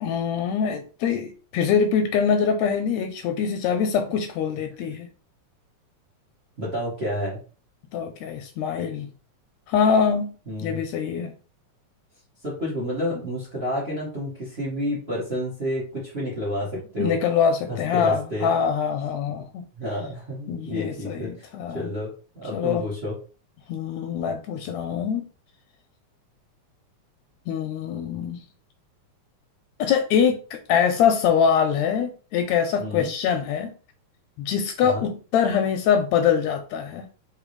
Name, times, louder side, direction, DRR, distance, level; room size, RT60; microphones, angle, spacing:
voice 1, 0.0-5.1 7.9-9.1 9.7-10.3 10.6-11.3 17.0-19.6 20.5-21.9 22.5-22.9 23.7-25.3 27.5-28.4 29.8-33.7 34.4-37.1, left 7 dB, 80° left, 1.7 m, -24 dB
voice 2, 6.6-7.4 10.5-10.8 12.4-17.2 17.9-18.5 19.8-21.5 21.7-22.1 22.3-23.1 32.8-33.1 34.8-35.0, equal, 30° right, 1.1 m, -30 dB
4.0 x 3.7 x 3.1 m
omnidirectional pair, 3.4 m